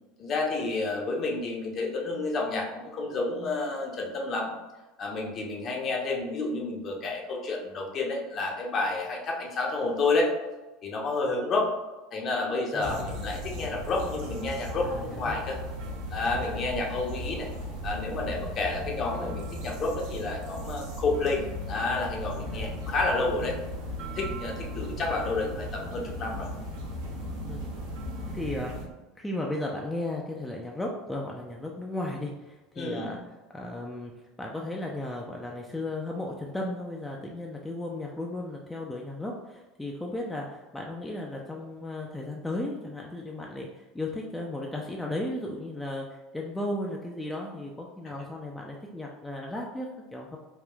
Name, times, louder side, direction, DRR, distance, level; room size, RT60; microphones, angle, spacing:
voice 1, 0.2-4.5 5.0-10.3 10.8-11.7 12.1-15.6 16.1-17.5 17.8-23.6 24.2-26.5 32.8-33.2, left 3 dB, 40° left, -1 dB, 0.7 m, -30 dB
voice 2, 12.7-13.1 14.8-15.4 16.4-16.7 22.4-22.8 27.5-27.6 28.3-28.7 29.2-33.2 33.5-34.1 34.4-50.4, left 1 dB, 10° left, -1 dB, 0.4 m, -35 dB
sound 1, 12.8-28.8, equal, 60° right, 0.7 m, -37 dB
3.5 x 2.4 x 2.3 m, 1.1 s
figure-of-eight pair, 70°, 0 cm